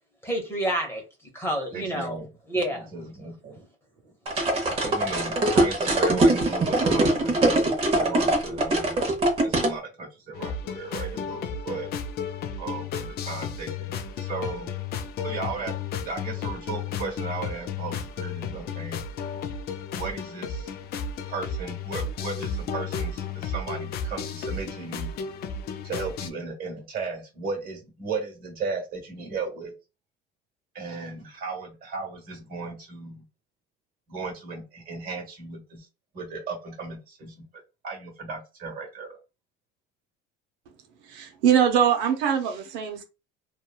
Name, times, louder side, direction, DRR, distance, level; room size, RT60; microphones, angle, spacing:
voice 1, 0.2-1.0 1.3-2.2 2.5-2.9, right 1 dB, 10° left, 0.9 m, -28 dB
voice 2, 1.7-2.3 2.5-3.7 4.0-9.0 9.4-11.9 12.6-14.7 15.2-15.7 16.0-19.0 19.9-20.7 21.3-25.1 25.8-29.7 30.7-33.2 34.1-35.9 36.1-37.5 37.8-39.2, right 4 dB, 45° right, 1.3 m, -36 dB
sound 1, 4.3-9.7, right 2 dB, 30° right, 0.8 m, -22 dB
sound 2, 10.3-26.3, left 5 dB, 55° left, 0.5 m, -33 dB
voice 3, 41.1-43.0, right 8 dB, 90° right, 0.6 m, -22 dB
3.0 x 2.3 x 2.3 m
cardioid pair, 125°, 20 cm